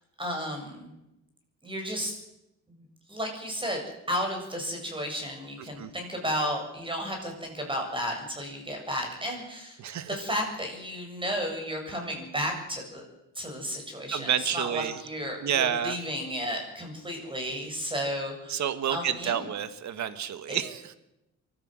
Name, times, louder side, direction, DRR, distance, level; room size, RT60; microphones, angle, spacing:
voice 1, 0.2-0.9 1.6-2.2 2.7-2.8 3.1-3.8 4.1-9.8 10.1-13.0 13.3-19.4 20.5-20.6, equal, 15° right, 3 dB, 7.9 m, -33 dB
voice 2, 5.6-5.9 9.8-10.2 14.1-15.0 15.4-16.0 18.5-21.0, right 9 dB, 65° right, 12 dB, 1.8 m, -29 dB
24.0 x 14.0 x 7.8 m, 0.89 s
cardioid pair, 90°, 30 cm